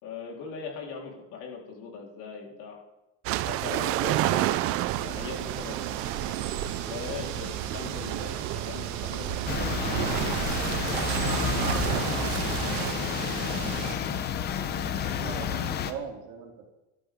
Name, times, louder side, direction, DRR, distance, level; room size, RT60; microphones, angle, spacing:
voice 1, 0.0-2.8 3.4-4.8 5.0-6.1 6.8-11.6 11.9-13.5, left 6 dB, 55° left, -1 dB, 4.0 m, -41 dB
sound 1, 3.2-12.9, right 15 dB, 40° right, 0.5 m, -30 dB
sound 2, 4.9-13.9, right 9 dB, 85° right, 1.9 m, -36 dB
sound 3, 9.4-15.9, left 8 dB, 25° left, 0.8 m, -30 dB
voice 2, 15.1-16.7, right 7 dB, 60° right, 1 dB, 3.1 m, -39 dB
18.5 x 12.0 x 3.7 m, 1.0 s
cardioid pair, 170°, 37 cm